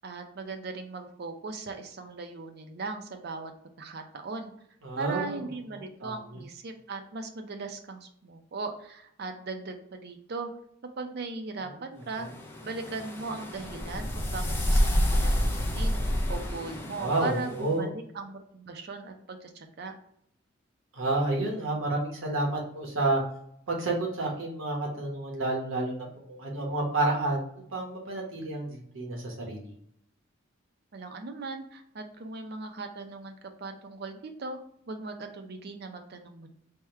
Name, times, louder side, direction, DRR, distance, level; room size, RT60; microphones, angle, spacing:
voice 1, 0.0-3.5 3.8-4.5 5.0-10.5 11.0-12.3 12.6-20.0 30.9-36.5, right 3 dB, 50° right, 6 dB, 0.5 m, -38 dB
voice 2, 4.8-5.4 6.0-6.1 17.0-17.9 20.9-23.2 23.7-27.4 27.7-29.7, right 2 dB, 80° right, -1 dB, 1.0 m, -30 dB
sound 1, 12.3-17.6, equal, 10° left, 0.4 m, -28 dB
3.5 x 2.1 x 4.3 m, 0.70 s
head